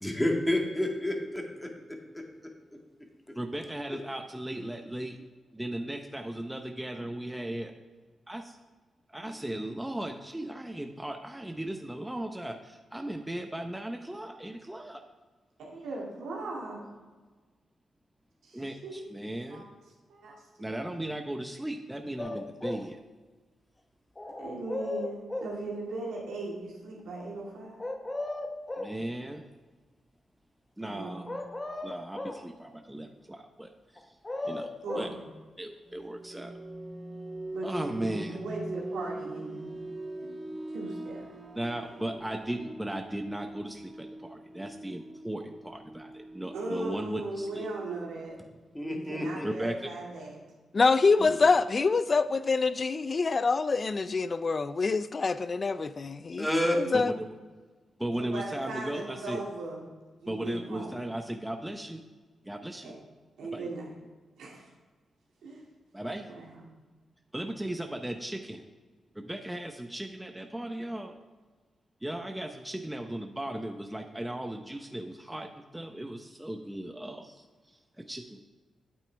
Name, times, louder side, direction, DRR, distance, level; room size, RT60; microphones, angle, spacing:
voice 1, 0.0-2.2 48.7-49.5 56.4-56.8, left 1 dB, 10° left, 1 dB, 1.9 m, -29 dB
voice 2, 3.3-5.2 5.5-7.7 8.3-8.6 9.1-15.0 18.5-19.6 20.6-23.0 28.8-29.4 30.8-31.3 31.8-34.0 34.4-34.7 34.9-35.1 35.6-36.5 37.6-38.4 41.6-47.7 49.4-49.7 51.2-51.6 56.9-57.3 58.0-59.4 60.3-62.0 62.4-62.9 63.5-63.7 65.9-66.3 67.3-68.6 69.1-71.2 72.0-77.4 78.1-78.4, right 1 dB, 10° right, 5 dB, 0.8 m, -36 dB
voice 3, 15.6-16.8 18.4-19.8 20.1-20.7 24.4-27.8 30.8-31.3 34.8-35.3 37.5-39.9 40.2-40.3 40.7-41.2 46.5-48.4 48.8-50.4 56.6-57.1 58.2-59.8 60.2-61.0 62.8-62.9 63.4-63.9 64.4-64.7 65.4-65.6 66.2-66.7, right 2 dB, 85° right, -4 dB, 2.4 m, -39 dB
sound 1, 22.2-22.9 24.2-25.6 27.8-29.0 31.3-32.5 34.0-35.2, left 2 dB, 25° left, 1.0 m, -36 dB
sound 2, 35.9-48.4, right 2 dB, 35° right, 1.1 m, -42 dB
voice 4, 50.7-56.5 56.8-57.1, left 4 dB, 45° left, 14 dB, 0.4 m, -25 dB
8.7 x 8.3 x 3.4 m, 1.3 s
supercardioid pair, 45°, 0 cm